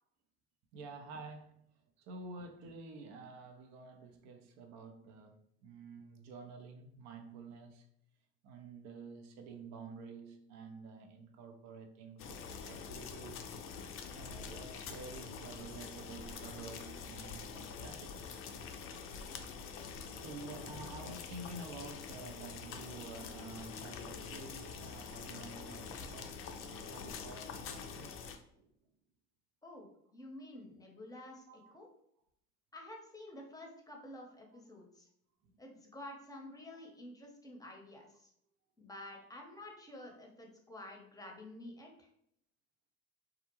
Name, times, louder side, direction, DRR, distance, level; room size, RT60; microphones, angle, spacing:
voice 1, 0.7-1.6 2.0-7.8 8.4-13.5 14.1-18.4 20.2-28.1 28.6-28.7 31.5-31.7 36.7-36.8, right 3 dB, 65° right, 0.6 m, -50 dB
sound 1, 12.2-28.4, left 6 dB, 45° left, 0.4 m, -46 dB
voice 2, 30.1-31.9 32.7-35.1 35.6-38.3 38.8-42.1, left 1 dB, 10° left, 0.7 m, -50 dB
2.3 x 2.1 x 2.9 m
hypercardioid pair, 70°, 30 cm